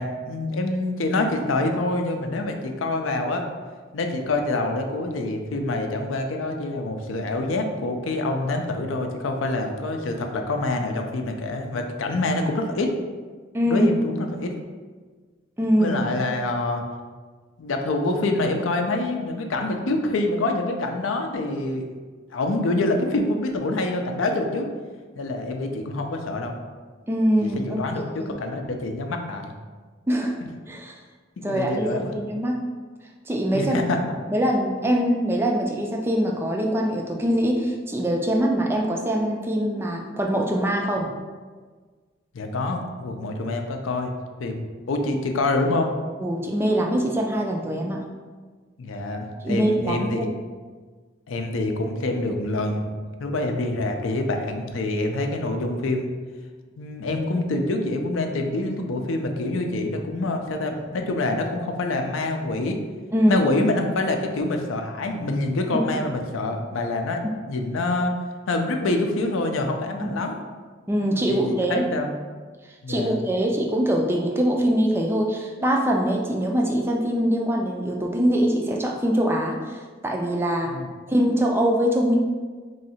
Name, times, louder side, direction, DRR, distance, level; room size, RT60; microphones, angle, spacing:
voice 1, 0.0-3.4 3.9-12.9 13.7-14.5 15.8-16.8 17.6-21.9 22.3-24.7 25.2-26.6 27.6-29.5 30.4-30.5 31.4-32.2 33.5-34.1 42.3-44.1 44.4-45.9 48.8-50.3 51.3-52.9 53.2-56.1 56.8-62.8 63.3-68.2 68.5-70.4 70.9-71.0 71.3-72.1 72.8-73.2 80.7-80.9, left 2 dB, 85° left, 4 dB, 0.5 m, -26 dB
voice 2, 13.5-13.9 15.6-16.0 27.1-28.4 30.1-30.4 30.7-31.0 31.4-32.6 33.3-33.8 34.3-41.1 46.2-48.0 49.4-50.3 63.1-63.4 66.0-66.1 70.0-70.1 70.9-71.8 72.9-80.7 81.1-82.2, equal, 10° right, 1 dB, 0.3 m, -23 dB
3.1 x 2.7 x 4.2 m, 1.5 s
head